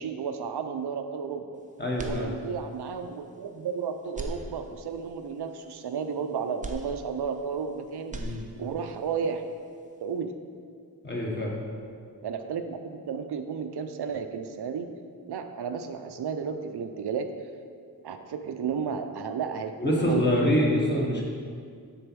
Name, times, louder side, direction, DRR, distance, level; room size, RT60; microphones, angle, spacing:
voice 1, 0.0-1.5 2.0-8.2 8.6-9.5 10.0-10.3 12.2-14.9 15.3-17.3 18.0-21.2, right 6 dB, 80° right, 7 dB, 0.5 m, -33 dB
voice 2, 1.8-2.3 8.1-8.4 11.0-11.6 19.8-21.2, equal, 25° left, -3 dB, 1.2 m, -25 dB
sound 1, 1.9-2.9 3.3-3.4 4.0-5.1 6.6-7.7 8.0-8.9, right 2 dB, 20° right, 0.4 m, -39 dB
6.6 x 4.1 x 6.1 m, 2.1 s
wide cardioid pair, 135°, 39 cm